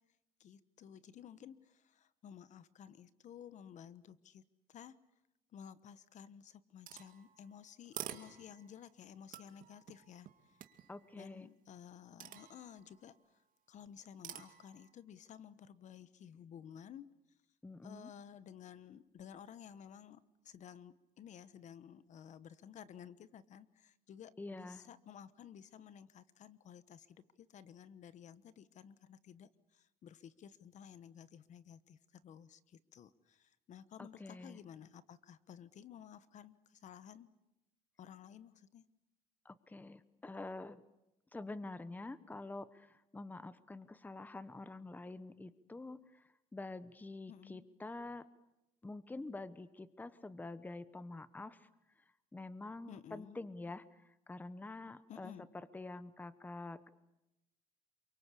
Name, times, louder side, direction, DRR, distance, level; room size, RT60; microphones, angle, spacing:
voice 1, 0.4-4.4 4.7-5.0 5.5-10.6 11.1-13.1 13.7-17.1 17.8-37.3 38.0-38.8 47.3-47.7 52.9-53.4 55.1-55.5, left 8 dB, 55° left, 15 dB, 1.2 m, -54 dB
sound 1, 6.9-8.8 9.3-11.1 12.2-13.1 14.2-14.9, right 11 dB, 65° right, 2.2 m, -50 dB
voice 2, 10.9-11.5 17.6-18.1 24.4-24.9 34.0-34.6 39.4-40.8 41.3-48.3 48.8-51.7 52.3-56.9, left 2 dB, 10° left, 15 dB, 1.0 m, -47 dB
28.0 x 24.0 x 8.4 m, 0.89 s
cardioid pair, 125°, 15 cm